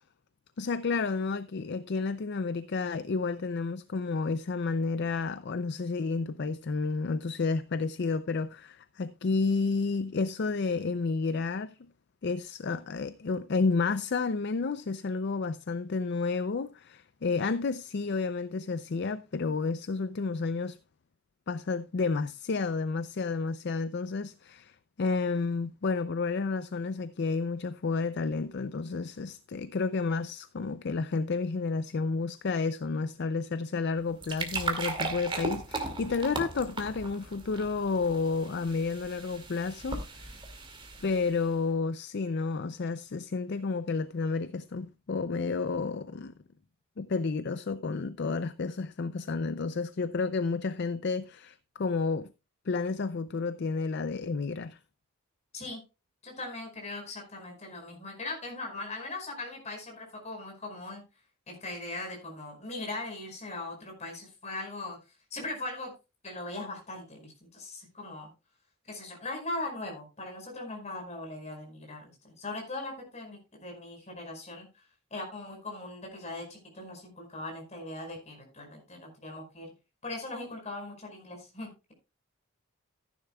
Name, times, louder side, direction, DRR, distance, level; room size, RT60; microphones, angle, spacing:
voice 1, 0.6-11.8 12.2-20.8 21.5-40.4 41.0-46.3 47.0-52.3 52.7-54.8, left 4 dB, 50° left, 0.4 m, -31 dB
sound 1, 33.9-41.5, right 3 dB, 25° right, 2.2 m, -37 dB
voice 2, 56.2-61.0 61.5-65.0 65.3-65.9 66.2-68.3 68.9-74.8 75.1-79.7 80.0-81.9, left 2 dB, 30° left, 5.1 m, -40 dB
14.5 x 10.0 x 2.3 m
head